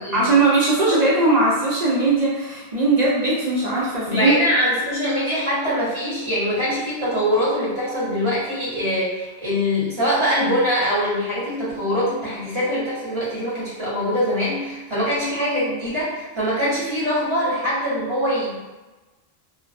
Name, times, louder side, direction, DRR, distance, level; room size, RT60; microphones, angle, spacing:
voice 1, 0.1-4.4, right 3 dB, 50° right, -7 dB, 0.5 m, -19 dB
voice 2, 4.1-18.6, equal, 30° right, -9 dB, 0.8 m, -23 dB
2.3 x 2.2 x 2.4 m, 1.2 s
omnidirectional pair, 1.0 m